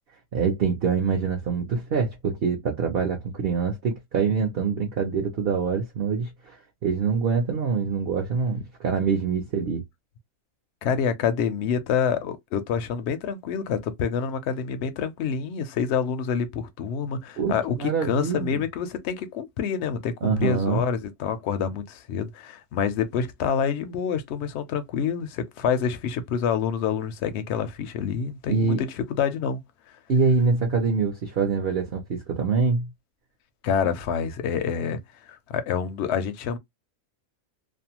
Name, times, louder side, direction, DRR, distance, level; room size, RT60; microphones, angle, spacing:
voice 1, 0.3-6.6 6.8-9.8 17.4-18.6 20.2-20.8 28.5-28.8 30.1-32.9, right 5 dB, 55° right, 0.6 m, -25 dB
voice 2, 10.8-29.6 33.6-35.0 35.3-36.6, left 7 dB, 65° left, 0.6 m, -27 dB
2.6 x 2.1 x 2.8 m
omnidirectional pair, 1.6 m